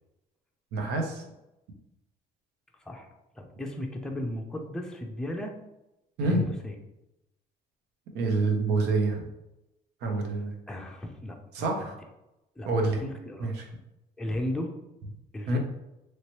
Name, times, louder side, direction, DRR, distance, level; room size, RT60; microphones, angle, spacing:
voice 1, 0.7-1.2 6.2-6.5 8.1-9.3 10.0-10.5 11.5-11.9 12.6-13.0 13.4-13.6 15.5-15.6, right 3 dB, 80° right, 2 dB, 0.8 m, -27 dB
voice 2, 2.8-3.1 3.3-5.6 6.2-6.7 10.7-11.4 12.6-13.6 14.2-14.7 15.3-15.6, left 1 dB, 5° left, 2 dB, 0.5 m, -35 dB
3.1 x 3.0 x 2.9 m, 0.91 s
cardioid pair, 110°, 17 cm